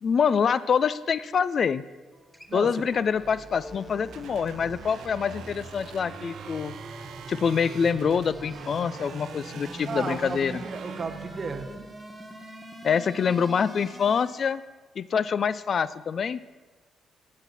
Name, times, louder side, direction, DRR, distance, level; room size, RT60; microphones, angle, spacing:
voice 1, 0.0-1.8 2.5-6.7 7.3-10.6 12.8-14.6 15.0-16.4, left 6 dB, 50° left, 17 dB, 0.4 m, -25 dB
Acoustic guitar, 2.1-7.3 8.9-10.1, left 1 dB, ahead, 0.9 m, -53 dB
sound 1, 2.4-14.6, right 2 dB, 20° right, 1.2 m, -43 dB
voice 2, 2.5-3.0 9.9-11.7, right 4 dB, 40° right, 5 dB, 1.1 m, -34 dB
sound 2, 4.1-11.6, right 8 dB, 80° right, 0.7 m, -45 dB
11.5 x 9.7 x 4.2 m, 1.3 s
cardioid pair, 90°, 0 cm